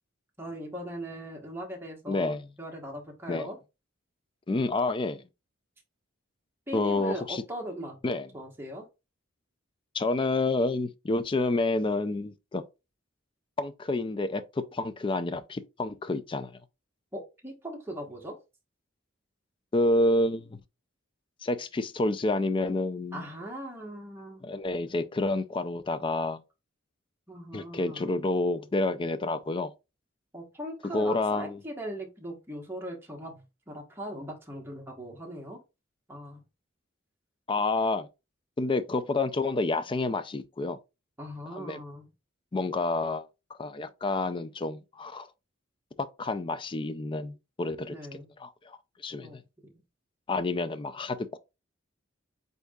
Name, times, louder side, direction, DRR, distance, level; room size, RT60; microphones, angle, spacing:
voice 1, 0.4-3.6 6.7-8.0 8.3-8.9 17.1-18.3 23.1-24.5 27.3-28.2 30.3-35.6 36.1-36.4 41.2-42.1 47.9-48.3 49.2-49.7, equal, 10° right, 1.2 m, -40 dB
voice 2, 2.1-2.5 3.3-3.5 4.5-5.2 6.7-7.4 8.0-8.3 9.9-12.6 13.6-16.5 19.7-20.6 21.4-23.3 24.4-26.4 27.5-29.7 30.9-31.6 37.5-38.1 38.6-40.8 41.5-41.8 42.5-43.3 43.6-45.3 46.0-48.0 48.4-48.8 49.0-49.3 50.3-51.4, left 2 dB, 25° left, 0.4 m, -29 dB
8.0 x 2.7 x 2.3 m
head